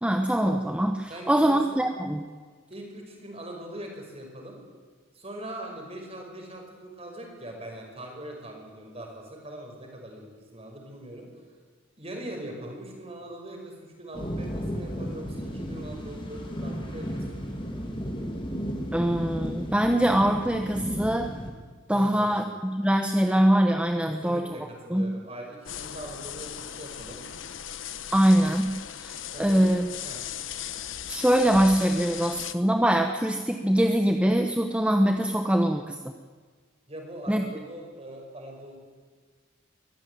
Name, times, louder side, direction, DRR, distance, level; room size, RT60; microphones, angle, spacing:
voice 1, 0.0-2.2 18.9-21.3 21.9-24.5 24.9-25.1 28.1-28.7 29.0-29.9 31.1-36.0 37.3-37.4, right 1 dB, 5° right, 5 dB, 0.9 m, -23 dB
voice 2, 1.1-1.9 2.7-4.6 5.1-11.3 12.0-17.5 21.9-22.3 24.1-27.2 29.3-30.2 36.9-38.8, right 1 dB, 30° right, 1 dB, 5.6 m, -41 dB
sound 1, 14.1-21.5, equal, 25° left, 3.2 m, -34 dB
sound 2, 25.6-32.5, left 9 dB, 75° left, 1.1 m, -38 dB
23.0 x 15.5 x 9.5 m, 1.5 s
head